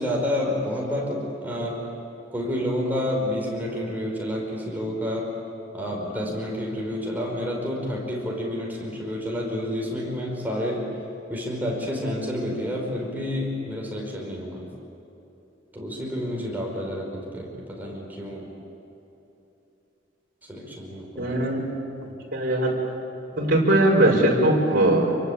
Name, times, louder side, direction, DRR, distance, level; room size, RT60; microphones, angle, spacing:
voice 1, 0.0-1.8 2.3-5.3 5.7-10.9 11.3-14.7 15.7-18.5 20.4-21.4 23.3-23.6, left 1 dB, 10° right, -2 dB, 5.2 m, -29 dB
voice 2, 21.2-21.6 22.3-22.7 23.4-25.2, right 1 dB, 50° right, -3 dB, 5.8 m, -20 dB
28.0 x 24.0 x 8.7 m, 2.9 s
head